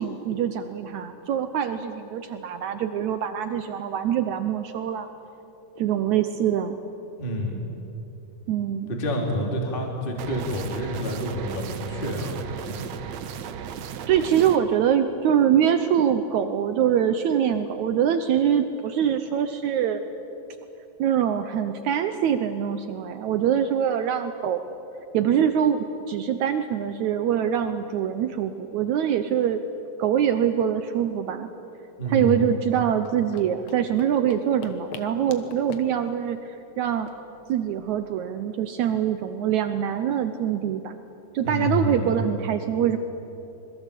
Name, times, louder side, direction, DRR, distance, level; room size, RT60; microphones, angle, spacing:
voice 1, 0.0-5.1 5.8-6.8 8.5-8.9 14.1-20.0 21.0-24.7 25.1-29.6 30.0-31.5 32.1-37.1 37.5-40.9 41.3-43.0, right 9 dB, 85° right, 9 dB, 1.6 m, -24 dB
voice 2, 7.2-7.5 8.9-12.9 32.0-32.5 41.4-42.2, equal, 15° left, 0 dB, 2.9 m, -28 dB
sound 1, 10.2-14.6, right 8 dB, 70° right, 1.7 m, -35 dB
sound 2, 33.0-38.1, left 5 dB, 60° left, 2.0 m, -43 dB
26.5 x 21.5 x 8.3 m, 3.0 s
omnidirectional pair, 4.5 m